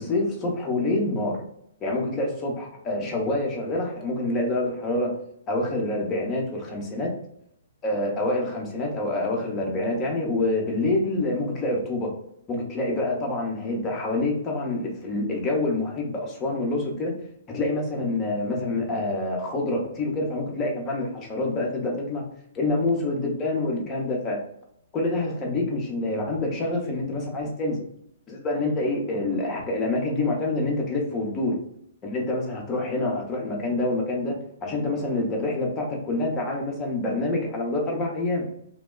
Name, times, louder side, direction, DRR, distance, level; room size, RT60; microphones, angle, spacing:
voice 1, 0.0-1.4 1.8-5.1 5.5-7.1 7.8-12.1 12.5-17.1 17.5-22.2 22.5-24.4 24.9-27.8 28.3-31.6 32.0-38.5, left 2 dB, 20° left, -1 dB, 0.7 m, -26 dB
2.9 x 2.2 x 2.2 m, 0.72 s
figure-of-eight pair, 120°, 0 cm